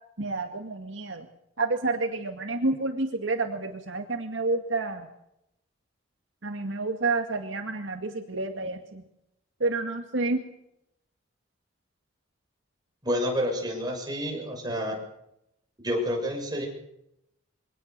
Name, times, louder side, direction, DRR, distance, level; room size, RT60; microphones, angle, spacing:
voice 1, 0.2-1.3 1.6-5.1 6.4-9.0 9.6-10.4, right 3 dB, 70° right, 5 dB, 2.0 m, -29 dB
voice 2, 13.0-14.9 15.8-16.7, equal, 20° right, 0 dB, 6.8 m, -29 dB
24.0 x 18.5 x 6.8 m, 0.81 s
head